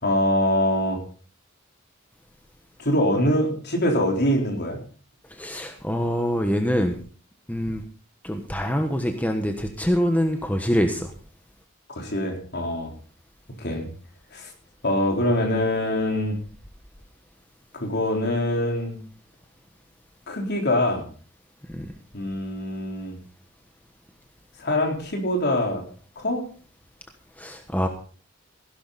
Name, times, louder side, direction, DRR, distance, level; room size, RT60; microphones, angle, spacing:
voice 1, 0.0-1.0 2.8-4.8 11.9-12.9 13.6-13.9 14.3-14.5 14.8-16.3 17.7-19.0 20.3-21.1 22.1-23.2 24.6-25.8 26.2-26.4, left 1 dB, 55° left, 2 dB, 4.0 m, -24 dB
voice 2, 5.3-7.0 7.5-7.8 8.2-11.1 21.7-21.9 27.4-27.9, equal, 10° left, 5 dB, 1.2 m, -25 dB
16.5 x 11.5 x 4.1 m, 0.40 s
head